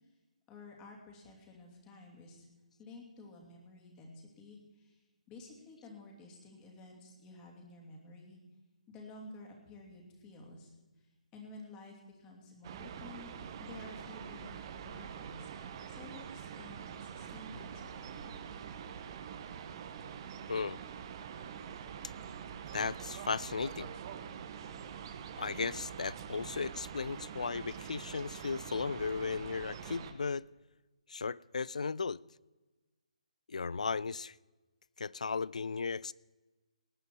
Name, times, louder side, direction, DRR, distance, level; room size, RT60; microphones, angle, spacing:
voice 1, 0.5-2.5 2.8-4.9 5.3-8.4 8.9-10.7 11.3-13.4 13.6-18.2, left 2 dB, 20° left, 1 dB, 2.6 m, -52 dB
sound 1, 12.6-30.1, right 8 dB, 35° right, 1.1 m, -45 dB
voice 2, 20.5-20.8 22.7-23.9 25.4-30.4 31.1-32.2 33.5-34.3 35.0-36.1, left 5 dB, 75° left, 23 dB, 0.3 m, -36 dB
18.5 x 9.3 x 4.6 m, 1.2 s
figure-of-eight pair, 145°, 4 cm